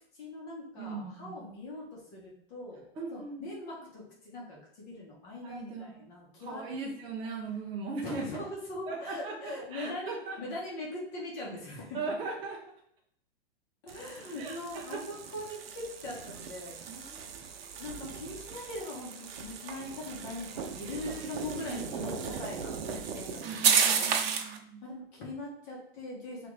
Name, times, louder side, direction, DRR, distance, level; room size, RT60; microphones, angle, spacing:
voice 1, 0.1-2.8 3.1-6.6 8.0-12.1 13.8-17.2 17.8-23.6 23.8-24.6 24.8-26.5, left 2 dB, 40° left, -3 dB, 1.1 m, -41 dB
voice 2, 0.8-1.4 3.0-3.5 3.8-3.9 5.4-6.0 6.4-8.4 8.9-10.4 11.9-12.6 14.4-15.1 16.9-17.6 21.7-22.4 23.0-23.1 23.4-24.9, right 4 dB, 20° right, -1 dB, 0.4 m, -39 dB
sound 1, 13.9-24.6, right 7 dB, 75° right, 0.6 m, -34 dB
3.3 x 2.5 x 3.2 m, 0.70 s
hypercardioid pair, 125°, 31 cm